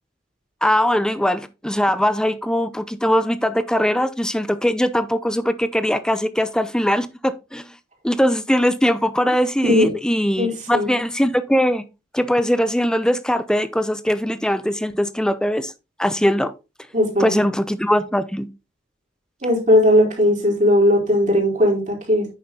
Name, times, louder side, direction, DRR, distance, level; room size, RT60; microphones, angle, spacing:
voice 1, 0.6-7.6 8.0-11.8 12.1-15.7 16.0-16.5 17.2-18.5, equal, 5° left, 0.7 m, -21 dB
voice 2, 10.4-10.9 16.9-17.5 19.4-22.3, left 1 dB, 40° right, 4.0 m, -18 dB
9.6 x 6.4 x 3.7 m
head